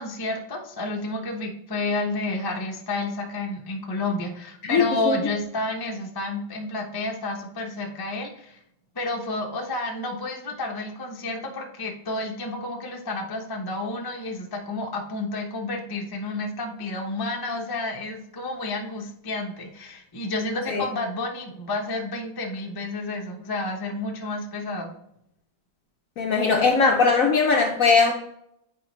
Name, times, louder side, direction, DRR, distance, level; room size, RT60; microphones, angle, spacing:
voice 1, 0.0-8.6 8.9-24.9, left 2 dB, 25° left, 1 dB, 0.5 m, -30 dB
voice 2, 4.6-5.2 20.7-20.8 26.2-28.1, left 4 dB, 65° left, 2 dB, 0.8 m, -20 dB
8.4 x 4.6 x 3.1 m, 0.75 s
omnidirectional pair, 2.0 m